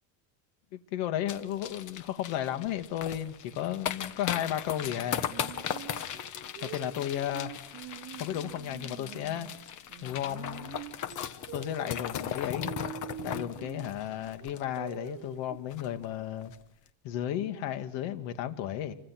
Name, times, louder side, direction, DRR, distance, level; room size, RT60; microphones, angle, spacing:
voice 1, 0.7-5.3 6.6-7.5 8.2-9.5 10.0-10.8 11.5-12.7 13.2-16.5 17.0-19.0, left 11 dB, 65° left, 8 dB, 2.6 m, -34 dB
sound 1, 1.3-15.1 15.4-15.5 15.7-16.0 16.4-16.6, left 9 dB, 40° left, 1.4 m, -38 dB
Singing, 4.8-9.5 9.9-13.9 14.4-15.6, right 11 dB, 45° right, 2.5 m, -45 dB
28.5 x 25.5 x 6.3 m, 0.73 s
cardioid pair, 160°, 47 cm